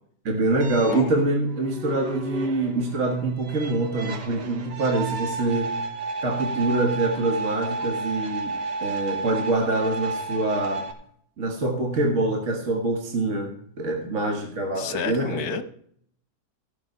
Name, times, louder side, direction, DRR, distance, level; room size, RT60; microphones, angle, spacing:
voice 1, 0.3-5.7 6.2-10.9 11.4-15.4, right 2 dB, 45° right, 2 dB, 1.8 m, -25 dB
sound 1, 0.6-10.9, right 3 dB, 75° right, 2.1 m, -32 dB
voice 2, 14.8-15.6, left 6 dB, 65° left, 11 dB, 1.3 m, -30 dB
16.5 x 6.5 x 5.4 m, 0.65 s
omnidirectional pair, 1.8 m